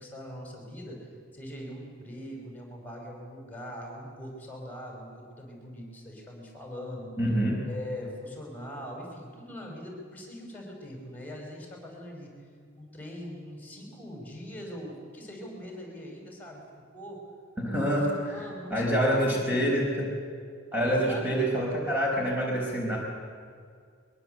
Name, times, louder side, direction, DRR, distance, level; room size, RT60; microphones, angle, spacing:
voice 1, 0.0-7.1 7.6-12.3 12.8-16.6 16.9-17.2 17.7-17.8 18.1-19.6 20.8-21.4, equal, 10° left, 0 dB, 5.4 m, -42 dB
voice 2, 7.2-7.6 17.6-18.4 18.7-20.1 20.7-23.0, equal, 10° right, -3 dB, 4.9 m, -26 dB
23.0 x 22.5 x 8.0 m, 2.2 s
head